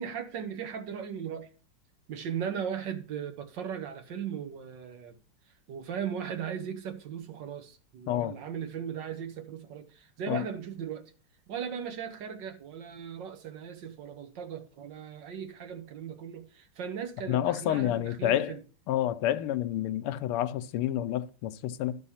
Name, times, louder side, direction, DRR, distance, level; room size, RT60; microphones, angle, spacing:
voice 1, 0.0-1.5 2.1-5.2 5.7-11.1 11.5-18.6, right 8 dB, 60° right, 1.5 m, -37 dB
voice 2, 17.3-18.6 18.9-22.0, left 12 dB, 90° left, 1.6 m, -29 dB
11.5 x 4.8 x 5.6 m
omnidirectional pair, 2.4 m